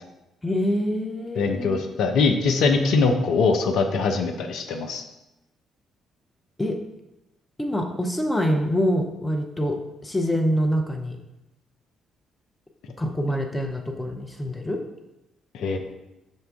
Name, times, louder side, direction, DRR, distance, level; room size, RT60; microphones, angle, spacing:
voice 1, 0.4-1.8 6.6-6.8 7.6-11.2 13.0-14.8, equal, 15° left, 3 dB, 0.6 m, -25 dB
voice 2, 1.4-5.0 15.5-15.8, left 4 dB, 60° left, 5 dB, 0.4 m, -22 dB
5.2 x 2.2 x 3.5 m, 0.94 s
figure-of-eight pair, 45°, 0 cm